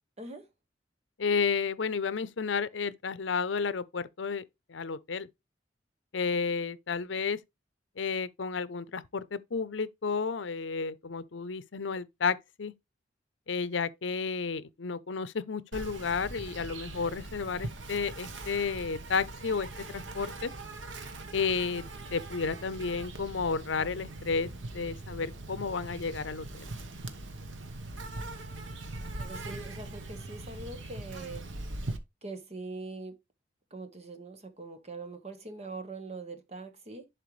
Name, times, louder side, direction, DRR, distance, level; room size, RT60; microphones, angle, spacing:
voice 1, 0.2-0.5 29.2-31.5 32.2-33.2 33.7-37.1, right 3 dB, 35° right, 1.3 m, -42 dB
voice 2, 1.2-4.4 4.7-5.3 6.1-7.4 8.0-12.7 13.5-20.5 21.3-21.8 22.1-26.6, left 5 dB, 80° left, 0.6 m, -32 dB
Insect, 15.7-32.0, right 2 dB, 85° right, 1.1 m, -41 dB
11.0 x 4.5 x 3.2 m
head